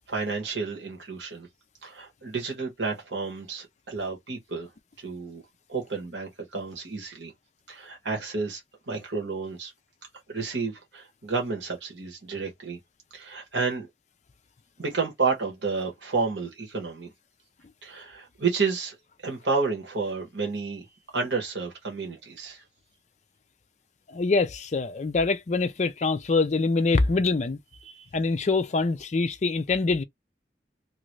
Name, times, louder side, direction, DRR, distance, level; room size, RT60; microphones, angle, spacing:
voice 1, 0.1-1.5 1.8-4.7 5.0-5.4 5.7-7.3 7.7-8.6 8.9-9.7 10.3-12.8 13.1-13.9 14.8-17.1 17.8-19.0 19.2-20.9 21.1-22.6 27.8-28.0, right 4 dB, 80° right, 1.4 m, -30 dB
voice 2, 24.1-27.6 28.1-30.0, left 3 dB, 40° left, 0.4 m, -24 dB
3.0 x 2.6 x 3.1 m
head